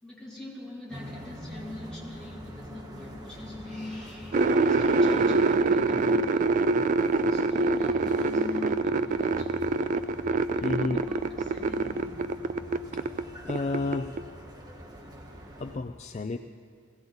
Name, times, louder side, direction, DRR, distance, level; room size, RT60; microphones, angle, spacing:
voice 1, 0.0-6.6 7.3-9.8 10.5-12.5, left 2 dB, 5° left, 2.7 m, -42 dB
sound 1, 0.9-15.8, equal, 20° right, 1.5 m, -44 dB
sound 2, 4.3-13.2 13.5-14.2, right 3 dB, 40° right, 0.3 m, -25 dB
voice 2, 10.6-11.0 12.9-13.0 13.4-14.2 15.6-16.4, left 3 dB, 35° left, 0.4 m, -30 dB
21.0 x 16.0 x 4.0 m
head